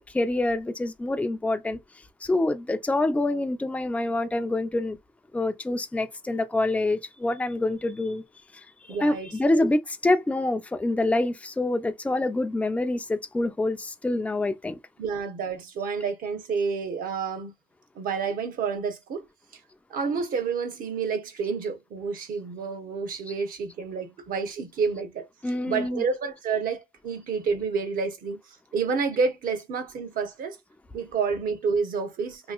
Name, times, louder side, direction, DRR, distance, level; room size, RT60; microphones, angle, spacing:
voice 1, 0.0-1.8 2.2-5.0 5.3-8.2 8.5-14.8 23.3-23.4 25.4-26.0, left 2 dB, 10° left, 0.5 m, -26 dB
voice 2, 8.9-9.7 15.0-17.5 17.9-19.2 19.9-25.3 25.7-28.4 28.7-30.6 30.9-32.5, right 5 dB, 55° right, 1.0 m, -29 dB
3.0 x 2.8 x 2.4 m
cardioid pair, 110°, 17 cm